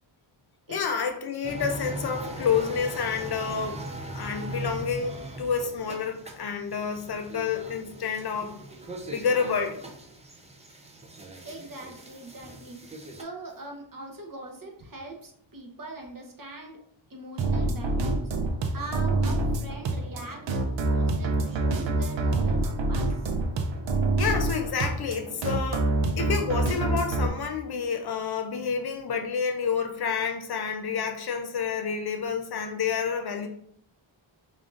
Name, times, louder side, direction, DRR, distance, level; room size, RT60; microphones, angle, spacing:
voice 1, 0.7-3.8 4.1-8.6 9.0-9.8 24.2-25.9 26.2-33.5, left 6 dB, 55° left, 6 dB, 0.5 m, -29 dB
sound 1, 1.4-13.2, right 1 dB, 15° right, 0.5 m, -40 dB
voice 2, 11.4-12.8 13.1-16.8 17.1-18.3 18.7-23.3, right 2 dB, 45° right, 1 dB, 0.9 m, -42 dB
sound 2, 17.4-27.3, right 2 dB, 70° right, 0.6 m, -26 dB
5.0 x 2.5 x 2.4 m, 0.67 s
wide cardioid pair, 120°, 47 cm